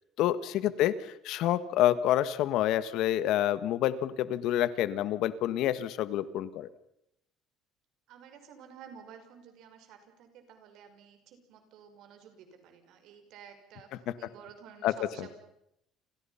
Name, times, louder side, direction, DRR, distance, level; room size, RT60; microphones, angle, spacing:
voice 1, 0.2-6.7 14.1-14.2 14.8-15.3, left 12 dB, 65° left, 14 dB, 1.5 m, -28 dB
voice 2, 8.1-15.3, right 7 dB, 65° right, 6 dB, 5.5 m, -52 dB
29.5 x 27.5 x 5.8 m, 0.79 s
cardioid pair, 145°, 0 cm